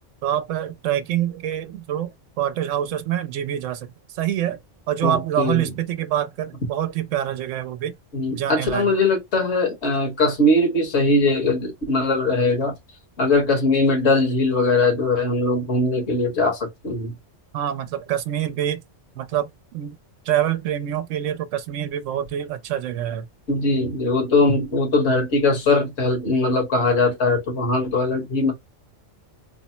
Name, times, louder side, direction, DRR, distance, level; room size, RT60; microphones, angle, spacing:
voice 1, 0.2-2.1 2.4-4.6 4.9-7.9 8.3-8.9 17.5-18.8 19.2-19.9 20.3-23.3, right 11 dB, 80° right, 0.9 m, -26 dB
voice 2, 5.0-5.7 8.1-12.7 13.2-17.1 23.5-28.5, left 2 dB, 60° left, 1.6 m, -20 dB
3.4 x 2.0 x 4.2 m
omnidirectional pair, 1.3 m